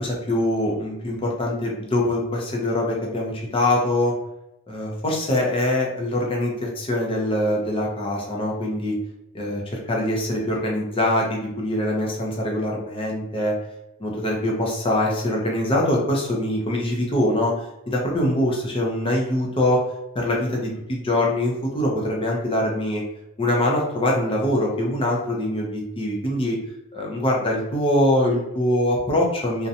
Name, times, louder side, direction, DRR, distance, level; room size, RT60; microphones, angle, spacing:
voice 1, 0.0-4.1 4.7-8.9 9.3-13.5 14.0-19.8 20.1-23.0 23.4-26.6 26.9-29.7, left 1 dB, 25° left, -2 dB, 0.5 m, -23 dB
2.5 x 2.1 x 2.7 m, 0.87 s
head